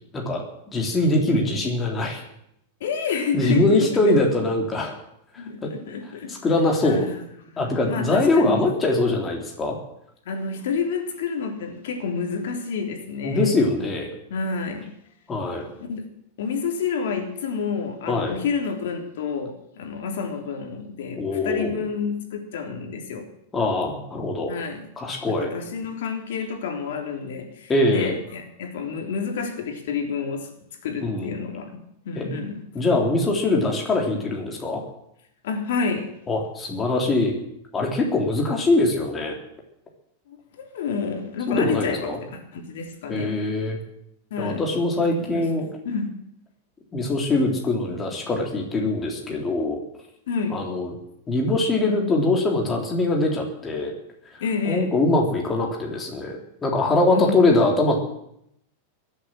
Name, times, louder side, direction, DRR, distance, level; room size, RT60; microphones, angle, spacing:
voice 1, 0.1-2.2 3.3-4.9 5.6-5.7 6.3-7.1 7.6-9.8 13.2-14.1 15.3-15.6 18.1-18.4 21.2-21.7 23.5-24.5 25.0-25.5 27.7-28.1 31.0-31.4 32.1-32.3 32.7-34.8 36.3-37.3 37.7-39.4 41.5-42.2 43.1-43.8 44.4-45.7 46.9-49.8 50.5-50.9 51.3-53.9 54.6-58.0, left 2 dB, 15° left, 0 dB, 3.6 m, -22 dB
voice 2, 2.8-4.1 5.4-6.4 6.8-8.7 10.2-13.5 14.3-14.8 15.4-16.1 16.4-23.3 24.5-24.8 25.3-30.5 30.8-31.8 32.0-32.6 35.4-36.1 40.3-42.1 42.5-43.3 44.3-44.6 45.0-45.4 45.8-46.1 50.3-50.6 54.4-54.9 57.1-57.5, left 5 dB, 75° left, 3 dB, 3.5 m, -29 dB
22.0 x 8.4 x 7.7 m, 0.78 s
supercardioid pair, 145°, 0 cm